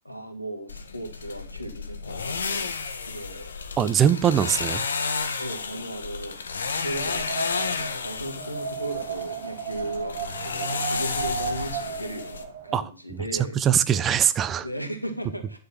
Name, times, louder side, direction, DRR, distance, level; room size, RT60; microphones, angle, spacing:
voice 1, 0.0-3.5 5.2-13.6 14.6-15.6, right 1 dB, 90° left, 5 dB, 2.6 m, -36 dB
sound 1, 0.7-12.4, left 5 dB, 65° left, 1.6 m, -32 dB
voice 2, 3.8-4.8 12.7-12.8 13.6-14.7, right 9 dB, 20° right, 15 dB, 0.7 m, -21 dB
Wind, 6.7-12.8, right 5 dB, 45° right, 4.1 m, -34 dB
11.5 x 6.7 x 5.9 m, 0.39 s
figure-of-eight pair, 110°, 0 cm